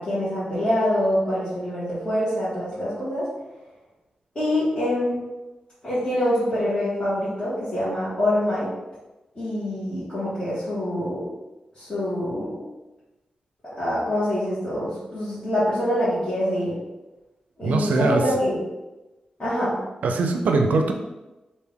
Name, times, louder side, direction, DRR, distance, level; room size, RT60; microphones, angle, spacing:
voice 1, 0.0-3.3 4.3-5.2 5.8-8.7 9.3-11.3 11.7-12.6 13.8-16.8 17.6-18.6 19.4-19.8, left 1 dB, 35° left, -12 dB, 1.5 m, -25 dB
voice 2, 17.6-18.2 20.0-20.9, right 3 dB, 85° right, 4 dB, 0.4 m, -21 dB
3.4 x 2.5 x 3.5 m, 1.0 s
cardioid pair, 80°, 3 cm